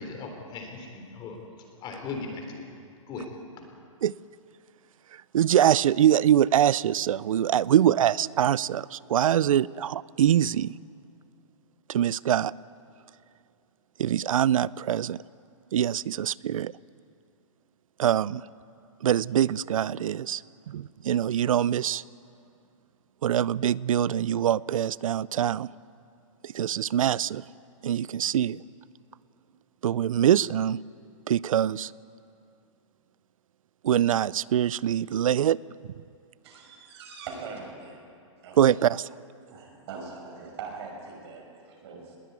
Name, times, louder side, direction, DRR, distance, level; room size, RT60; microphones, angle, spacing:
voice 1, 0.0-1.4 1.8-2.6 3.1-3.3, left 4 dB, 25° left, 3.6 m, -37 dB
voice 2, 5.1-10.7 11.9-12.5 14.0-15.2 15.7-16.7 18.0-18.4 19.0-20.4 20.7-22.0 23.2-25.7 26.4-27.4 27.8-28.6 29.8-30.8 31.3-31.9 33.8-35.6 38.6-39.1, right 10 dB, 80° right, 0.5 m, -24 dB
voice 3, 36.4-38.0 38.4-38.8 39.5-42.2, right 5 dB, 50° right, 5.9 m, -42 dB
21.0 x 15.0 x 9.5 m
hypercardioid pair, 150°, 17 cm